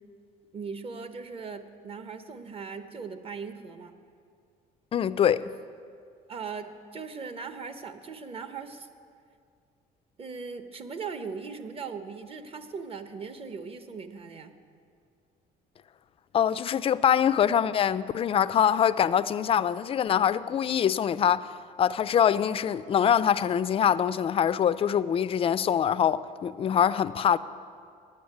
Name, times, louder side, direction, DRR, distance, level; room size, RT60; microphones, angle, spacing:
voice 1, 0.5-4.0 6.3-8.9 10.2-14.5, right 5 dB, 35° right, 0.8 m, -39 dB
voice 2, 4.9-5.5 16.3-21.5 21.8-27.4, left 9 dB, 35° left, 0.3 m, -24 dB
9.6 x 8.6 x 8.5 m
cardioid pair, 110°, 17 cm